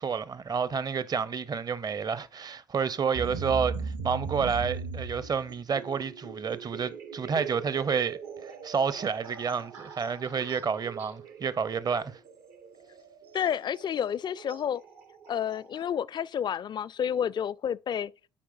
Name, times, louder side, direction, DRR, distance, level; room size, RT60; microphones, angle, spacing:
voice 1, 0.0-12.2, right 6 dB, 35° right, 0.6 m, -30 dB
sound 1, 3.1-15.8, right 5 dB, 70° right, 1.0 m, -40 dB
voice 2, 13.3-14.8 15.3-18.1, left 8 dB, 40° left, 0.3 m, -30 dB
8.7 x 4.7 x 2.6 m
hypercardioid pair, 50°, 12 cm